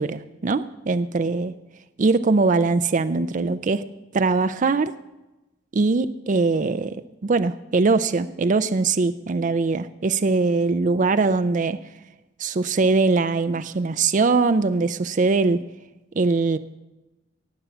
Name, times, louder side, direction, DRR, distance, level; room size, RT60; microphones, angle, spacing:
voice 1, 0.0-1.5 2.0-3.8 4.1-4.9 5.7-11.8 12.4-15.6 16.2-16.6, right 3 dB, 45° right, 11 dB, 0.4 m, -21 dB
18.5 x 7.2 x 6.9 m, 1.0 s
head